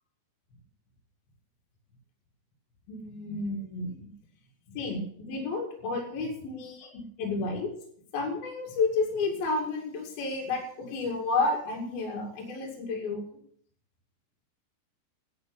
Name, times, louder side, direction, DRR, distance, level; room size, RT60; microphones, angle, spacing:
voice 1, 2.9-4.1 4.7-7.7 8.1-13.3, left 3 dB, 60° left, 0 dB, 4.0 m, -31 dB
11.0 x 9.4 x 6.9 m, 0.63 s
omnidirectional pair, 5.1 m